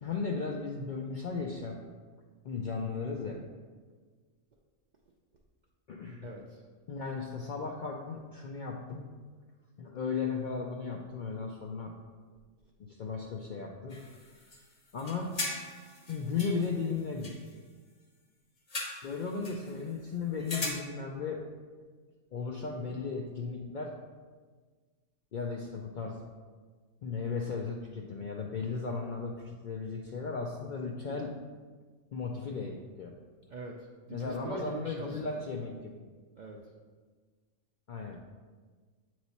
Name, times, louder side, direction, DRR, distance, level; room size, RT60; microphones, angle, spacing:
voice 1, 0.0-1.8 2.4-3.4 5.9-6.3 6.9-9.1 9.8-11.9 12.8-14.0 14.9-15.4 16.1-17.3 19.0-21.5 22.3-24.0 25.3-26.2 27.0-31.3 32.1-33.2 34.1-36.0 37.9-38.2, left 4 dB, 65° left, 0 dB, 0.5 m, -36 dB
voice 2, 6.2-6.6 33.5-35.4 36.4-36.6 38.0-38.2, right 2 dB, 60° right, -1 dB, 0.5 m, -43 dB
sound 1, 13.9-14.6 14.9-17.5 18.7-19.8 20.4-20.7, left 2 dB, 35° left, 0.8 m, -39 dB
8.0 x 3.1 x 4.1 m, 1.5 s
omnidirectional pair, 1.3 m